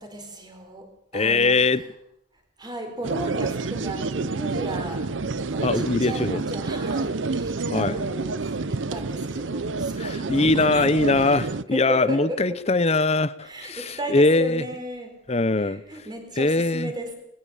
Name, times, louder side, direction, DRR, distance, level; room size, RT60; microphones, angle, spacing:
voice 1, 0.0-1.9 2.6-10.5 11.7-12.6 13.4-15.2 15.5-17.1, equal, 20° right, 4 dB, 4.4 m, -35 dB
voice 2, 1.1-1.8 5.6-6.4 7.7-8.0 10.0-14.6 15.3-15.8 16.4-16.9, left 3 dB, 35° left, 15 dB, 0.8 m, -22 dB
sound 1, 3.0-11.6, right 3 dB, 75° right, 0.7 m, -28 dB
21.0 x 18.5 x 7.1 m, 0.77 s
head